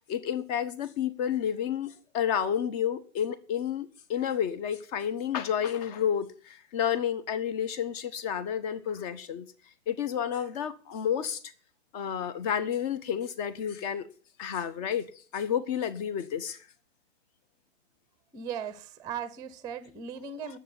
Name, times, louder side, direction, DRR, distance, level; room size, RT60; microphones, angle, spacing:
voice 1, 0.1-9.5 9.9-11.4 11.9-14.1 14.4-15.1 15.3-16.6 20.2-20.5, left 9 dB, 30° left, 1.2 m, -30 dB
voice 2, 18.3-20.6, right 7 dB, 10° right, 0.9 m, -38 dB
10.0 x 7.4 x 9.4 m
figure-of-eight pair, 115°, 38 cm